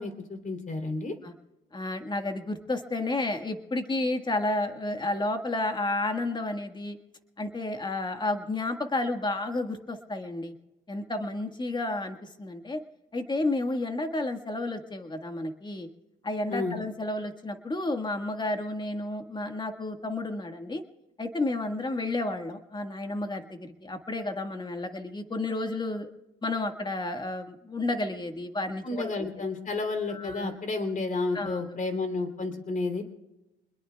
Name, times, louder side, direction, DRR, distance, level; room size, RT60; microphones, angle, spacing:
voice 1, 0.0-1.1 16.5-16.8 28.8-33.0, left 3 dB, 40° left, 6 dB, 3.3 m, -31 dB
voice 2, 1.7-7.0 7.4-10.5 10.9-12.8 13.1-15.9 16.2-20.8 21.2-26.1 26.4-29.3 30.1-30.6 31.3-31.8, left 2 dB, 20° left, 6 dB, 1.7 m, -31 dB
27.5 x 21.0 x 2.4 m, 1.0 s
cardioid pair, 90°, 20 cm